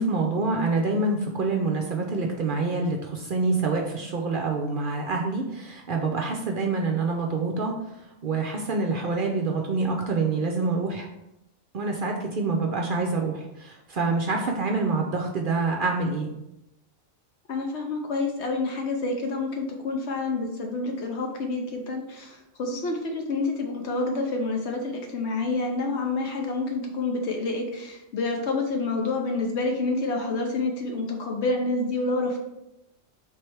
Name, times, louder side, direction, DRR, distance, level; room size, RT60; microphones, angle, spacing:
voice 1, 0.0-7.7 8.2-11.1 11.7-16.3, right 3 dB, 60° right, 1 dB, 0.6 m, -26 dB
voice 2, 17.5-32.4, left 3 dB, 65° left, 2 dB, 0.9 m, -28 dB
3.4 x 3.2 x 4.5 m, 0.87 s
omnidirectional pair, 1.3 m